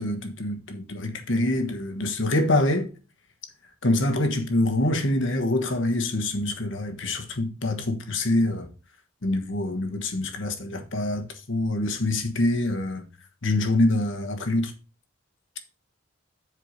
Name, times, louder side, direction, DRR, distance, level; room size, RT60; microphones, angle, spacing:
voice 1, 0.0-2.9 3.8-8.7 9.2-13.0 13.4-14.7, left 1 dB, 65° left, 1.3 m, -25 dB
7.8 x 4.8 x 5.1 m
head